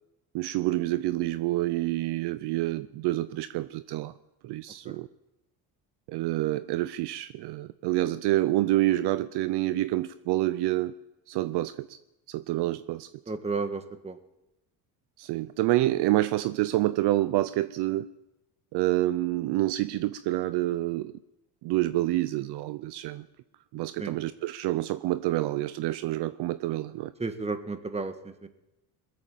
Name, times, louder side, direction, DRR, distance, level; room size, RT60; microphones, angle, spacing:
voice 1, 0.3-4.1 4.4-5.1 6.1-10.9 11.3-12.0 12.3-13.1 15.2-18.1 18.7-21.1 21.6-23.3 23.7-27.1, right 16 dB, 60° right, 14 dB, 0.7 m, -27 dB
voice 2, 13.3-14.2 24.0-24.1 27.2-28.5, right 4 dB, 15° right, 9 dB, 1.5 m, -33 dB
21.0 x 7.9 x 7.3 m, 0.92 s
supercardioid pair, 85°, 45 cm